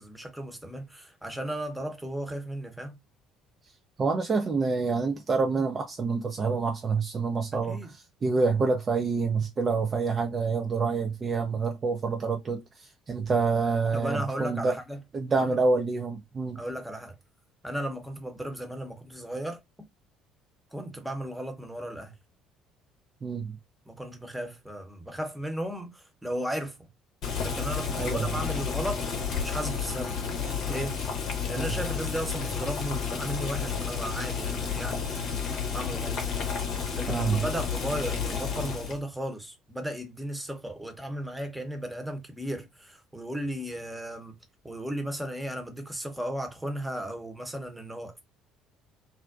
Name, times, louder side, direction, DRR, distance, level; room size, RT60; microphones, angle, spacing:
voice 1, 0.0-3.0 7.7-7.9 13.9-15.0 15.4-15.6 16.5-17.2 17.6-19.6 20.7-22.2 23.9-26.8 27.4-29.1 29.4-30.2 30.6-31.0 31.5-35.1 35.7-36.2 36.9-44.4 44.6-48.2, equal, 5° right, 0.8 m, -35 dB
voice 2, 4.0-7.8 8.2-14.8 15.1-16.6 23.2-23.6 28.0-28.3 31.6-31.7 37.1-37.4, right 4 dB, 35° right, 0.4 m, -27 dB
Boiling, 27.2-39.0, left 6 dB, 60° left, 0.7 m, -31 dB
2.5 x 2.1 x 2.4 m
hypercardioid pair, 55°, 0 cm